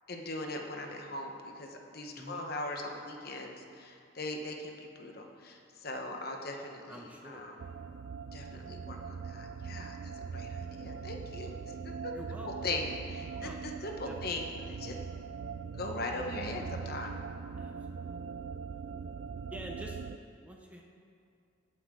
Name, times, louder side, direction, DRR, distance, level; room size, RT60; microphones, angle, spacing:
voice 1, 0.1-7.6 8.3-12.1 12.6-15.0 15.8-17.2, left 2 dB, 50° left, 2 dB, 1.2 m, -40 dB
voice 2, 2.2-2.5 6.9-7.5 12.1-12.5 13.2-13.6 14.0-14.1 17.6-18.1 19.5-20.8, equal, 5° right, 0 dB, 0.8 m, -47 dB
sound 1, 7.6-20.2, right 5 dB, 65° right, 0.3 m, -41 dB
18.0 x 8.8 x 3.8 m, 2.4 s
head